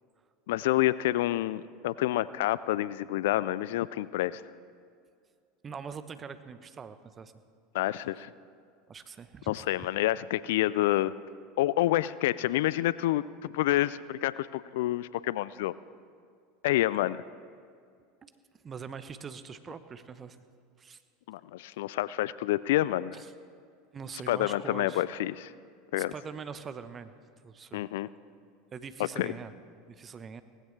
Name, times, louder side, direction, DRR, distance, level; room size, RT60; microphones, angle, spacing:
voice 1, 0.5-4.4 7.7-8.3 9.5-11.1 11.6-13.2 13.5-15.7 16.6-17.2 21.3-23.2 24.3-25.5 25.9-26.1 27.7-28.1 29.0-29.3, left 15 dB, 70° left, 18 dB, 0.3 m, -28 dB
voice 2, 5.6-7.3 8.9-9.6 18.2-18.3 18.6-20.4 20.8-21.0 23.1-23.3 23.9-25.0 26.0-27.1 27.4-27.9 28.7-29.5 29.9-30.4, right 6 dB, 30° right, 11 dB, 0.9 m, -43 dB
18.5 x 16.0 x 3.3 m, 2.2 s
hypercardioid pair, 80°, 0 cm